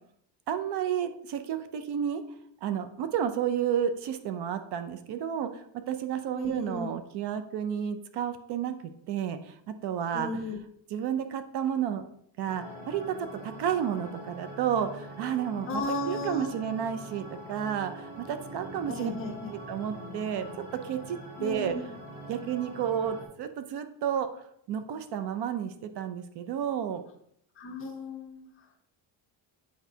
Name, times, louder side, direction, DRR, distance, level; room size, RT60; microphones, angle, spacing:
voice 1, 0.5-2.2 2.6-8.8 9.1-9.6 9.8-10.3 10.9-12.0 12.4-19.1 19.5-20.5 20.8-21.7 22.3-24.4 24.7-27.0, right 9 dB, 65° right, 9 dB, 0.6 m, -31 dB
voice 2, 6.3-6.9 10.1-10.6 15.7-16.5 18.9-19.5 21.4-21.9 27.6-28.5, left 2 dB, 30° left, 1 dB, 1.0 m, -35 dB
sound 1, 12.5-23.3, equal, 45° right, 1.4 m, -43 dB
8.1 x 4.7 x 2.7 m, 0.70 s
cardioid pair, 170°, 44 cm